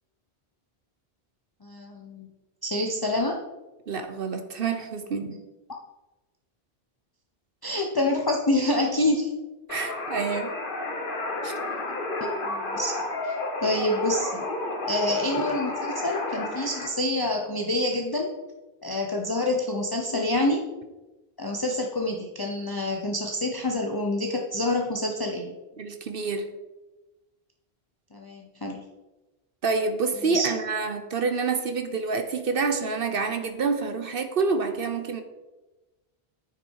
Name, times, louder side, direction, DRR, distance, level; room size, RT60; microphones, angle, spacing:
voice 1, 1.6-2.3 2.6-3.4 7.6-9.3 12.4-13.0 13.2-14.5 14.9-18.3 18.8-20.7 21.4-25.5 28.1-28.8 30.3-30.5, left 1 dB, 25° left, 1 dB, 0.8 m, -27 dB
voice 2, 3.9-5.3 9.7-10.5 11.4-11.6 25.8-26.5 29.6-35.2, right 4 dB, 60° right, 8 dB, 1.0 m, -27 dB
sound 1, 9.7-16.9, left 2 dB, 55° left, 1.6 m, -31 dB
9.9 x 7.2 x 4.7 m, 1.1 s
omnidirectional pair, 1.1 m